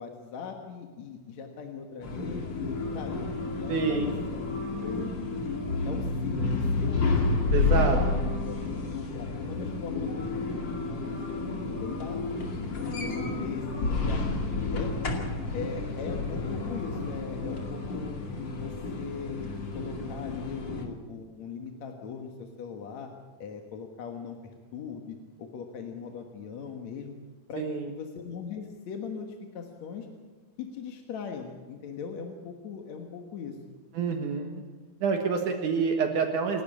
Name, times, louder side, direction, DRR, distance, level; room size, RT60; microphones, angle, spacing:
voice 1, 0.0-2.6 2.9-4.4 4.8-7.1 7.5-8.0 8.5-8.6 8.9-12.2 13.0-15.0 15.5-18.2 18.5-19.4 19.7-23.1 23.4-24.4 24.7-27.1 27.5-29.3 29.5-30.1 30.6-33.6, left 6 dB, 60° left, 3 dB, 2.5 m, -40 dB
sound 1, 2.0-20.9, left 3 dB, 35° left, 2.7 m, -30 dB
voice 2, 3.7-4.1 7.5-8.0 27.6-27.9 33.9-34.6 35.0-36.6, right 5 dB, 65° right, 3 dB, 2.8 m, -27 dB
28.0 x 12.0 x 8.7 m, 1.3 s
omnidirectional pair, 4.0 m